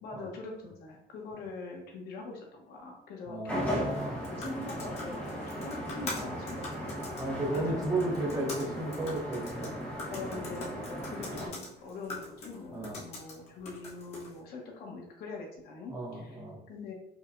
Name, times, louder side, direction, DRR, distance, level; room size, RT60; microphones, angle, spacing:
voice 1, 0.0-3.9 4.3-6.9 7.5-7.8 10.1-16.9, left 3 dB, 70° left, 1 dB, 0.9 m, -43 dB
voice 2, 3.3-4.2 6.2-6.3 7.2-9.7 10.3-10.7 12.7-13.0 15.9-16.6, right 2 dB, 20° right, -1 dB, 0.7 m, -34 dB
sound 1, 3.5-11.5, equal, 10° left, 0.8 m, -37 dB
sound 2, 3.8-14.4, left 3 dB, 40° left, 1.0 m, -45 dB
4.7 x 2.2 x 2.5 m, 0.81 s
cardioid pair, 175°, 16 cm